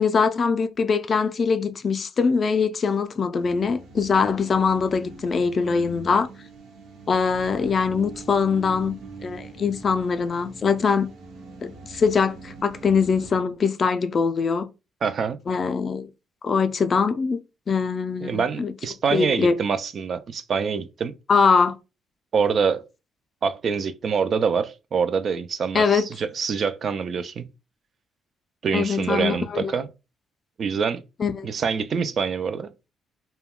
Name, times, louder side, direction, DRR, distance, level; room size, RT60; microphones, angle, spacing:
voice 1, 0.0-6.3 7.1-9.0 9.2-11.1 11.6-14.7 15.5-16.1 16.4-17.4 17.7-18.7 19.1-19.6 21.3-21.7 25.7-26.1 28.7-29.7 31.2-31.5, left 5 dB, 45° left, 0.4 m, -22 dB
sound 1, 3.4-13.4, right 3 dB, 80° right, 0.8 m, -43 dB
voice 2, 15.0-15.4 18.2-21.1 22.3-22.8 23.4-27.5 28.6-29.9 30.6-31.0 31.4-32.7, right 6 dB, 55° right, 0.3 m, -25 dB
2.2 x 2.2 x 3.5 m
cardioid pair, 90°, 0 cm